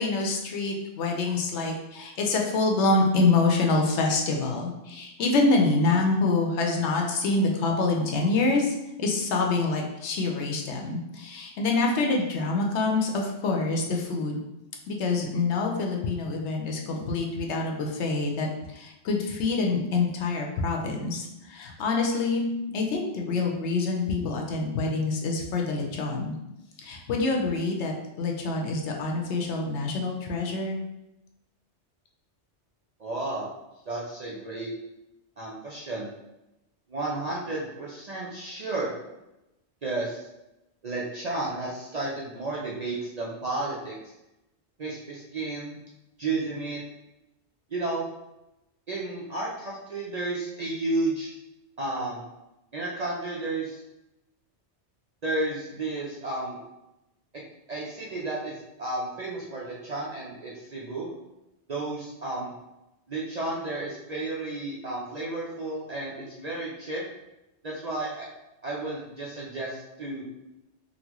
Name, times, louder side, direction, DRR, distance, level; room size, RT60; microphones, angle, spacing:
voice 1, 0.0-14.4 14.9-22.5 22.7-26.4 26.8-30.8, left 3 dB, 75° left, 1 dB, 0.9 m, -26 dB
voice 2, 33.0-33.5 33.9-34.7 35.4-36.1 36.9-39.0 39.8-40.3 40.8-44.0 44.8-45.8 46.2-46.8 47.7-48.1 48.9-51.3 51.8-52.2 52.7-53.8 55.2-56.6 57.3-57.4 57.7-61.1 61.7-62.5 63.1-67.0 67.6-68.3 68.6-70.2, right 2 dB, 50° right, -5 dB, 0.5 m, -32 dB
4.0 x 2.1 x 2.9 m, 0.93 s
omnidirectional pair, 1.2 m